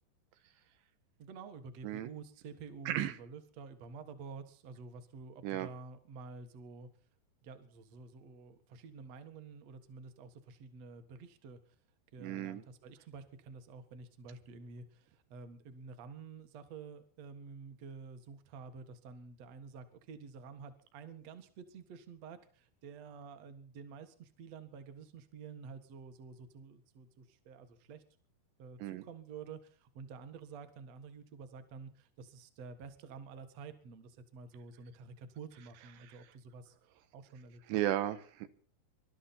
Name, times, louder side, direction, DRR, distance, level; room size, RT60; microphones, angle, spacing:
voice 1, 1.2-6.9 7.4-11.8 12.1-28.0 28.6-36.8 37.1-37.8, right 5 dB, 50° right, 9 dB, 2.1 m, -50 dB
voice 2, 12.2-12.6 28.8-29.0 37.7-38.5, right 13 dB, 85° right, 11 dB, 3.3 m, -34 dB
25.5 x 12.5 x 4.3 m, 0.44 s
omnidirectional pair, 4.9 m